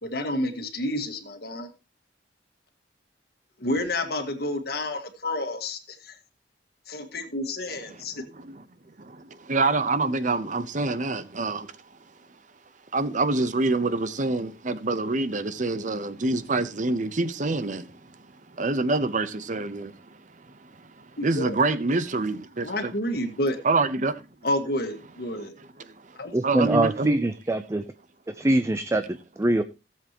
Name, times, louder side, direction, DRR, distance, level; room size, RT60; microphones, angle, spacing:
voice 1, 0.0-1.7 3.6-6.2 6.9-8.2 21.2-21.6 22.6-23.6 24.4-25.6 26.2-26.4, left 1 dB, 60° left, 1.8 m, -30 dB
voice 2, 9.0-11.7 12.9-17.9 18.5-19.9 21.0-22.9 23.6-24.2 26.4-27.2, right 3 dB, 45° right, 0.8 m, -26 dB
voice 3, 26.3-27.8 28.4-29.6, right 1 dB, 15° right, 0.4 m, -24 dB
17.0 x 7.5 x 2.9 m
head